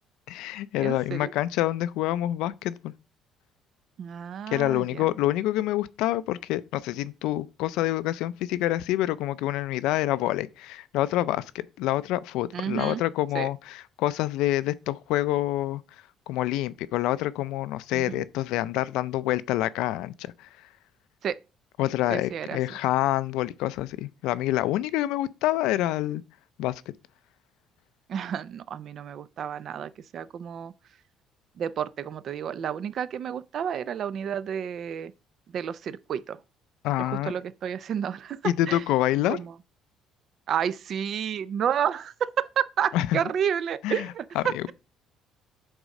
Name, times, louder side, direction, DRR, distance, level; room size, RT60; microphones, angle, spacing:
voice 1, 0.3-2.9 4.5-15.8 16.3-20.5 21.8-26.2 26.6-26.8 36.8-37.3 38.4-39.4 42.9-43.2 43.8-44.1 44.4-44.6, left 14 dB, 85° left, 0.4 m, -27 dB
voice 2, 0.8-1.3 4.0-5.1 12.5-13.0 13.3-13.5 17.9-18.2 21.2-21.4 22.1-22.6 28.1-30.7 31.6-35.1 35.5-36.4 37.0-38.8 39.3-39.5 40.5-44.7, right 8 dB, 40° right, 0.4 m, -30 dB
8.0 x 3.7 x 5.3 m
cardioid pair, 165°, 0 cm